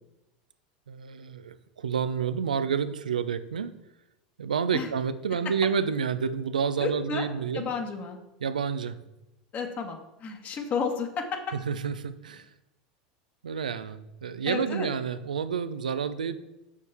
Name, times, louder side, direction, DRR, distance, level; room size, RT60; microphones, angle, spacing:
voice 1, 0.9-3.7 4.4-7.7 8.4-9.0 11.7-12.5 13.4-16.4, right 6 dB, 90° right, 12 dB, 0.5 m, -29 dB
voice 2, 6.8-7.3 7.5-8.2 9.5-11.4 14.4-14.9, left 5 dB, 40° left, 4 dB, 1.5 m, -32 dB
6.9 x 6.5 x 3.5 m, 0.93 s
hypercardioid pair, 90°, 4 cm